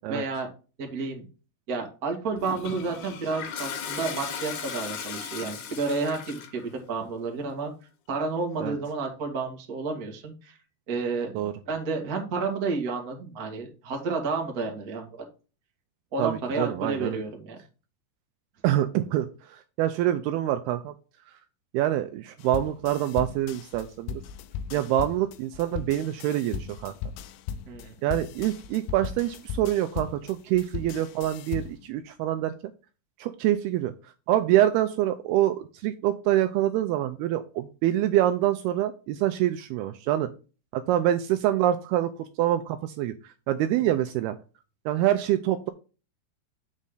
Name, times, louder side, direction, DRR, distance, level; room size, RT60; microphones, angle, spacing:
voice 1, 0.1-0.5 0.8-1.2 1.7-7.7 8.1-10.6 10.9-15.1 16.1-17.6 24.7-24.8 27.7-27.9, right 4 dB, 40° right, 3 dB, 1.2 m, -31 dB
Toilet flush, 2.4-6.6, left 7 dB, 60° left, 2.2 m, -37 dB
voice 2, 16.2-17.2 18.6-20.9 21.7-24.2 24.7-26.9 28.0-32.5 33.2-33.9 34.3-40.3 40.7-43.1 43.5-44.4 44.9-45.7, right 13 dB, 85° right, 9 dB, 2.3 m, -25 dB
sound 1, 22.4-31.9, left 7 dB, 85° left, 2.0 m, -37 dB
8.4 x 5.3 x 3.9 m, 0.33 s
omnidirectional pair, 4.9 m